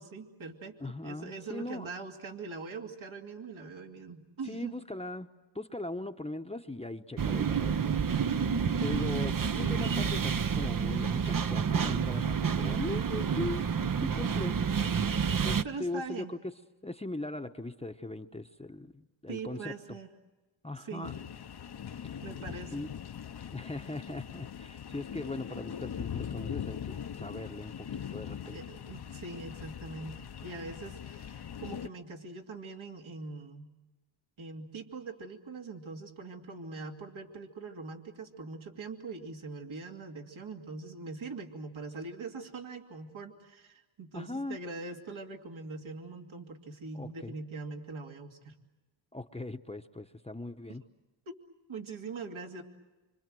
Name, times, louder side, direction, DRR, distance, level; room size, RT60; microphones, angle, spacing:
voice 1, 0.0-0.8 1.0-4.7 15.6-16.3 19.3-20.1 20.8-21.1 22.2-22.8 28.5-33.7 34.4-48.5 51.3-51.4 51.7-52.6, right 4 dB, 70° right, 4 dB, 2.7 m, -42 dB
voice 2, 0.8-1.9 4.5-5.3 5.5-8.0 8.6-13.7 14.0-14.6 15.4-16.4 16.8-19.7 20.6-21.1 22.0-22.9 23.5-28.6 44.1-44.6 46.9-47.3 49.1-50.8, left 2 dB, 10° left, 7 dB, 1.0 m, -39 dB
sound 1, 7.2-15.6, right 6 dB, 40° right, 0.9 m, -29 dB
sound 2, 21.0-31.9, left 8 dB, 50° left, 0.9 m, -41 dB
26.0 x 26.0 x 7.7 m, 1.1 s
cardioid pair, 70°, 49 cm